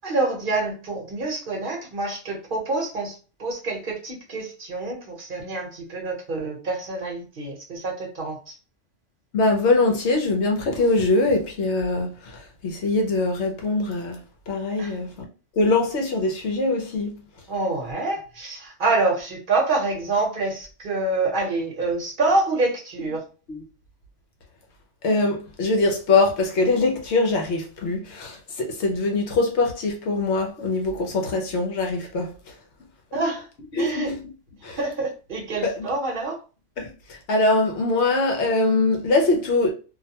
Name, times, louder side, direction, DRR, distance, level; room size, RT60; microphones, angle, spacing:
voice 1, 0.0-8.5 14.8-14.9 17.5-23.2 33.1-33.5 33.8-34.1 34.8-36.4, right 3 dB, 45° right, 1.1 m, -26 dB
voice 2, 9.3-15.1 15.6-17.2 23.5-23.6 25.0-32.3 33.7-34.2 34.6-34.8 35.6-35.8 36.8-39.7, left 2 dB, 70° left, 1.0 m, -23 dB
2.6 x 2.1 x 2.8 m
omnidirectional pair, 1.3 m